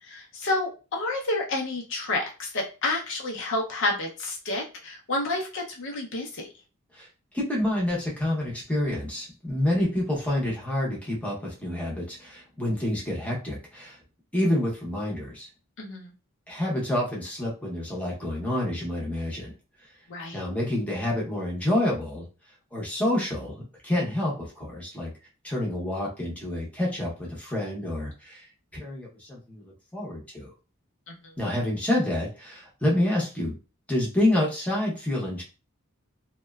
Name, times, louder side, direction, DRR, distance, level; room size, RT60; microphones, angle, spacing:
voice 1, 0.0-6.5 15.8-16.1 20.1-20.4 31.1-31.3, left 2 dB, 60° left, 1 dB, 0.6 m, -30 dB
voice 2, 7.3-14.0 14.3-15.5 16.5-19.5 20.3-22.3 22.7-25.1 25.4-30.5 31.4-33.5 33.9-35.4, left 1 dB, 5° left, -4 dB, 0.7 m, -28 dB
2.7 x 2.1 x 2.2 m, 0.32 s
head